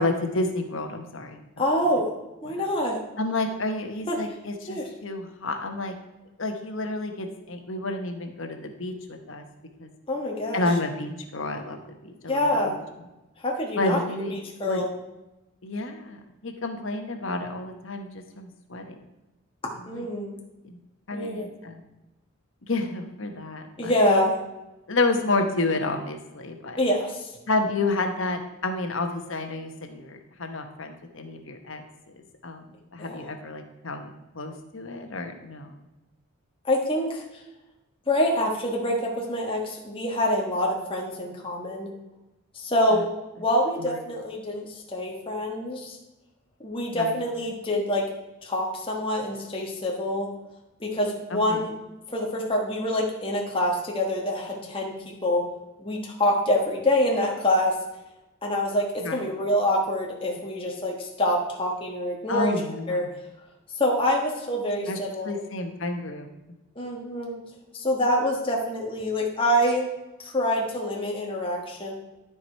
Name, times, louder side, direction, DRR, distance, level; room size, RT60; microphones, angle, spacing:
voice 1, 0.0-1.4 1.9-2.0 2.4-2.7 3.2-5.9 6.4-9.4 9.8-9.9 10.5-12.7 13.8-14.3 14.6-14.9 15.6-18.9 19.8-20.1 20.6-20.8 21.1-21.8 22.6-23.9 24.9-26.8 27.5-32.6 32.9-35.8 42.9-43.0 43.8-44.0 46.9-47.2 51.3-51.6 59.0-59.2 62.3-63.1 64.9-66.3, left 2 dB, 60° left, 5 dB, 1.1 m, -30 dB
voice 2, 1.6-2.1 2.4-3.0 4.1-4.2 4.7-4.9 10.1-10.6 12.3-12.8 13.4-14.0 14.3-14.9 19.9-20.3 21.1-21.5 23.8-24.4 26.8-27.3 33.0-33.1 36.6-37.2 38.1-41.9 42.5-43.1 43.4-46.0 46.6-48.0 48.4-50.3 50.8-51.7 52.1-54.9 55.2-55.4 55.8-57.7 58.4-58.8 59.1-62.5 62.9-63.0 63.8-65.3 66.8-67.4 67.7-69.9 70.2-71.9, left 1 dB, 25° left, -1 dB, 1.3 m, -26 dB
12.5 x 4.8 x 4.5 m, 1.0 s
head